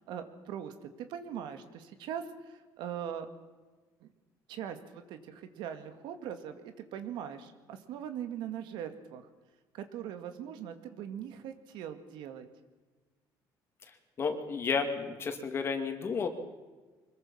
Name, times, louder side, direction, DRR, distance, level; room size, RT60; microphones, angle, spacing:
voice 1, 0.0-3.3 4.0-4.1 4.5-9.3 9.7-12.5, right 9 dB, 80° right, 8 dB, 2.3 m, -41 dB
voice 2, 14.2-16.3, left 5 dB, 30° left, 5 dB, 2.6 m, -32 dB
25.0 x 21.5 x 5.8 m, 1.3 s
cardioid pair, 160°, 8 cm